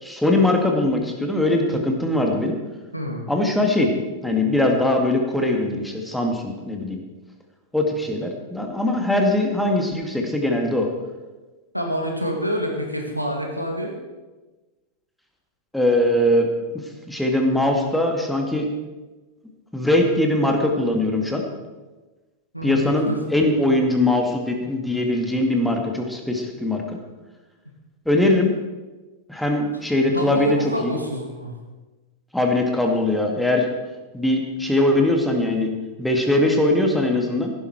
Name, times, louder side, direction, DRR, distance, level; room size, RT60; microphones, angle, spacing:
voice 1, 0.0-2.6 3.3-3.9 4.2-7.0 7.7-10.9 15.7-16.5 17.1-18.7 19.7-21.4 22.6-26.8 28.1-28.5 29.3-30.9 32.3-33.7 34.1-35.7 36.0-37.5, left 1 dB, 5° left, 2 dB, 2.2 m, -21 dB
voice 2, 2.9-3.2 11.7-13.9 22.5-23.2 30.1-31.5, equal, 90° right, 1 dB, 2.3 m, -27 dB
16.5 x 11.5 x 4.7 m, 1.2 s
figure-of-eight pair, 90°, 0 cm